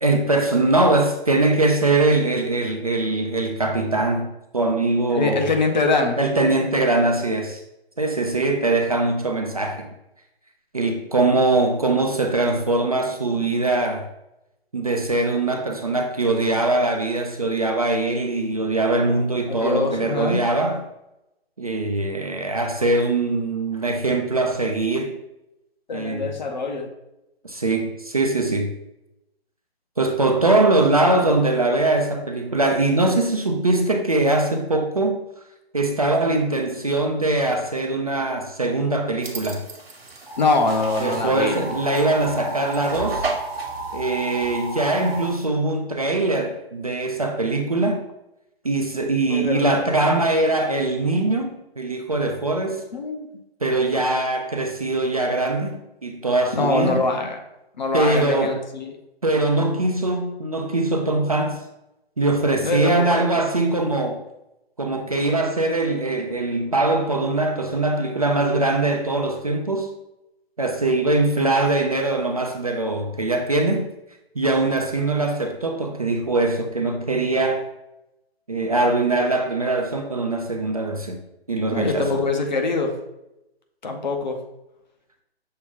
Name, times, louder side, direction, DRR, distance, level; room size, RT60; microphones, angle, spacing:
voice 1, 0.0-5.5 6.2-7.6 8.0-9.9 10.7-14.1 14.7-20.8 21.6-25.2 25.9-26.3 27.4-28.7 30.0-35.2 35.7-39.7 41.0-43.3 43.9-48.0 48.6-52.8 53.6-57.0 57.9-58.6 59.2-61.6 62.2-64.2 64.8-69.9 70.6-73.9 74.4-77.6 78.5-81.2 81.5-82.1, right 2 dB, 35° right, 0.4 m, -22 dB
voice 2, 5.1-6.2 19.5-20.4 25.9-26.9 38.2-38.3 40.4-41.8 49.3-49.8 52.9-53.3 56.5-57.4 57.8-59.0 62.6-63.2 81.7-82.9 83.8-84.4, left 3 dB, 45° left, 0.7 m, -23 dB
sound 1, 39.2-45.5, right 3 dB, 65° right, 1.0 m, -36 dB
sound 2, 40.3-45.3, right 2 dB, 5° left, 0.8 m, -33 dB
6.4 x 2.2 x 3.6 m
figure-of-eight pair, 140°, 32 cm